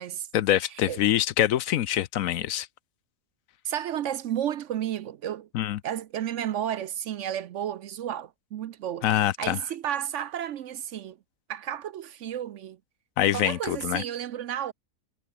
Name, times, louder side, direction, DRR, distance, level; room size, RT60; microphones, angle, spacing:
voice 1, 0.3-2.7 5.5-5.8 9.0-9.6 13.2-14.0, left 12 dB, 70° left, 1.0 m, -25 dB
voice 2, 3.6-5.5 5.8-11.2 11.5-12.8 13.3-14.7, right 10 dB, 65° right, 0.9 m, -32 dB
omnidirectional pair, 1.5 m